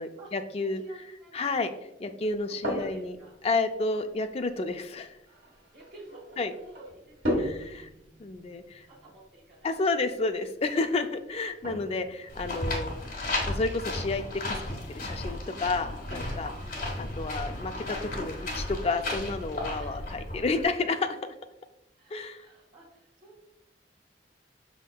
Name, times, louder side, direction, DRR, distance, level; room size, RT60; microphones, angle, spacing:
voice 1, 0.0-0.8 1.3-1.7 2.0-3.2 3.4-5.2 6.4-6.5 7.4-7.9 8.2-8.9 9.6-12.9 13.4-16.5 17.2-21.2 22.1-22.5, left 3 dB, 35° left, 8 dB, 0.3 m, -31 dB
voice 2, 0.6-2.2 2.5-3.4 5.7-7.6 7.8-8.0 8.8-9.7 16.5-16.9 19.7-20.3 22.0-23.5, right 2 dB, 50° right, -8 dB, 1.5 m, -51 dB
sound 1, 2.2-20.3, equal, 85° right, 1.5 m, -40 dB
sound 2, 12.3-20.6, left 1 dB, 50° left, 1.5 m, -34 dB
6.3 x 3.5 x 2.3 m, 0.84 s
head